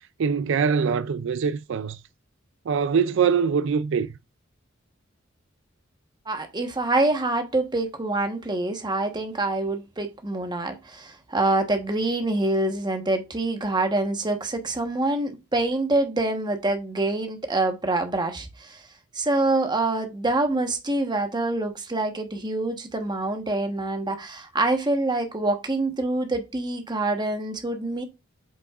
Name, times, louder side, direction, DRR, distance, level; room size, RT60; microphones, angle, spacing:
voice 1, 0.2-2.0 2.7-4.1, right 6 dB, 70° right, 0.4 m, -23 dB
voice 2, 6.3-18.8 19.1-28.0, right 2 dB, 20° right, 1.2 m, -26 dB
8.1 x 5.8 x 2.5 m
head